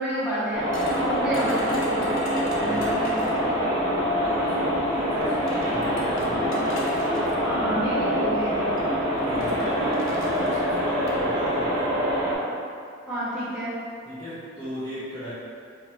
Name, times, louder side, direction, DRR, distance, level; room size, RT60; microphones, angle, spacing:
voice 1, 0.0-3.9 7.4-8.8 9.4-9.9 13.1-13.8, right 1 dB, 5° right, -13 dB, 1.2 m, -30 dB
sound 1, 0.5-12.3, equal, 40° right, 1.0 m, -25 dB
sound 2, 0.7-3.5 4.6-4.7 5.2-7.4 8.3-8.5 8.8-8.9 9.2-11.2, left 1 dB, 65° left, 0.6 m, -40 dB
voice 2, 2.6-3.0 4.2-6.8 9.2-11.9 14.1-15.3, equal, 20° left, -13 dB, 0.7 m, -36 dB
4.4 x 2.5 x 3.0 m, 2.3 s
head